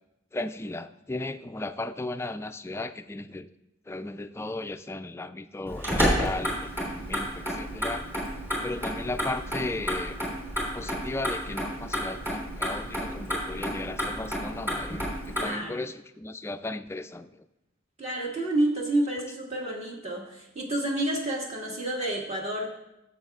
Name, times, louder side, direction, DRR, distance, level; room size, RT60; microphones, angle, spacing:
voice 1, 0.3-3.5 3.9-6.7 7.1-8.1 8.6-10.2 10.7-15.0 15.3-17.4, left 2 dB, 15° left, 9 dB, 0.3 m, -35 dB
Motor vehicle (road), 5.7-15.4, equal, 15° right, 3.1 m, -31 dB
voice 2, 15.3-15.8 18.0-22.8, right 1 dB, 35° right, -2 dB, 1.8 m, -29 dB
15.0 x 7.3 x 2.4 m, 0.92 s
head